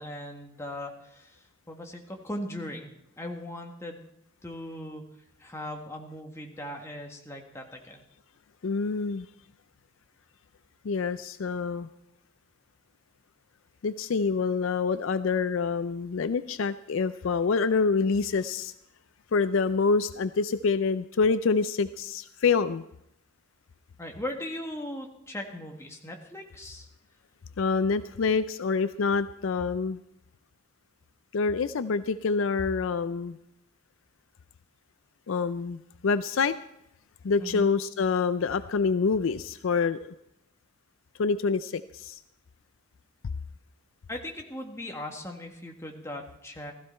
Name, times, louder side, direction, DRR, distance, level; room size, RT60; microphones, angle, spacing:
voice 1, 0.0-1.4 1.7-2.9 3.2-4.0 4.4-5.1 5.4-8.0 24.0-26.9 37.4-37.7 44.1-46.7, left 1 dB, 15° left, 2 dB, 1.6 m, -38 dB
voice 2, 8.6-9.3 10.8-11.9 13.8-18.7 19.3-22.8 27.6-30.0 31.3-33.4 35.3-36.6 37.2-40.1 41.2-42.2, left 4 dB, 60° left, 13 dB, 0.4 m, -26 dB
16.0 x 14.0 x 4.4 m, 0.80 s
head